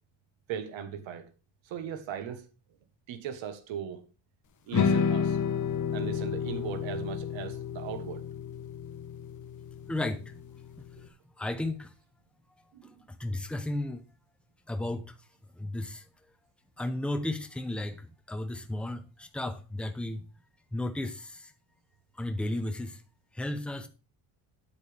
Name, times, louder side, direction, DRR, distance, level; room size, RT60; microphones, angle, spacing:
voice 1, 0.5-1.3 1.6-2.4 3.1-4.0 4.7-5.4 5.9-8.2 12.7-13.0, right 9 dB, 65° right, 1.4 m, -38 dB
sound 1, 4.7-11.0, left 6 dB, 40° left, 1.0 m, -31 dB
voice 2, 9.9-10.2 11.4-11.9 13.2-14.0 14.7-15.1 15.6-16.0 16.8-20.2 20.7-21.5 22.2-23.0 23.3-23.9, left 1 dB, ahead, 0.7 m, -33 dB
9.3 x 8.5 x 3.4 m
cardioid pair, 150°, 49 cm